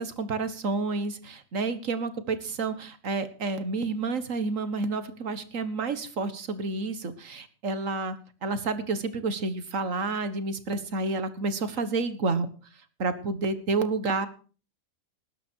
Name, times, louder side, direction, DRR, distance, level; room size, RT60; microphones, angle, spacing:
voice 1, 0.0-8.2 8.4-12.5 13.0-14.3, right 3 dB, 75° right, 12 dB, 1.9 m, -29 dB
19.5 x 10.5 x 4.6 m, 0.38 s
omnidirectional pair, 1.4 m